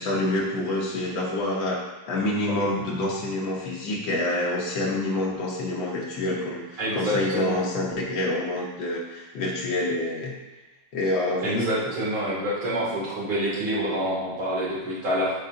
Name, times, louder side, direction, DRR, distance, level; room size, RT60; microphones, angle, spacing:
voice 1, 0.0-1.8 2.1-10.3 10.9-11.7, left 1 dB, 80° left, -3 dB, 1.6 m, -27 dB
voice 2, 6.8-7.6 11.4-15.3, equal, 90° right, -8 dB, 2.9 m, -27 dB
8.2 x 4.7 x 2.5 m, 1.1 s
omnidirectional pair, 2.1 m